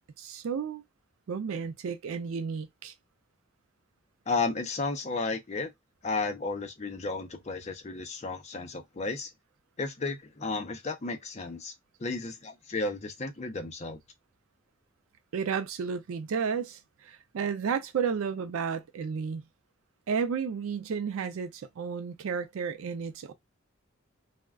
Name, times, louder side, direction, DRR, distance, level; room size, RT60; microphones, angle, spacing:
voice 1, 0.2-0.8 1.3-2.9 15.3-19.4 20.1-23.3, right 6 dB, 85° right, 0.4 m, -32 dB
voice 2, 4.3-5.7 6.0-9.3 9.8-11.7 12.0-14.0, left 3 dB, 35° left, 0.5 m, -33 dB
2.3 x 2.1 x 3.3 m
head